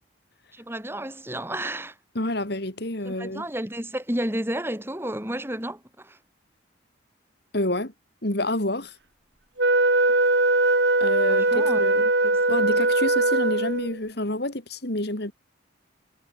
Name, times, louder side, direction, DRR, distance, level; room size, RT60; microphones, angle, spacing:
voice 1, 0.5-1.9 3.0-6.2 11.3-11.8 12.2-12.4, right 1 dB, 10° right, 4.6 m, -31 dB
voice 2, 2.1-3.4 7.5-7.9 8.2-8.9 11.0-12.1 12.5-15.3, left 1 dB, 55° left, 3.0 m, -28 dB
Wind instrument woodwind instrument, 9.6-14.0, right 2 dB, 60° right, 4.6 m, -21 dB
head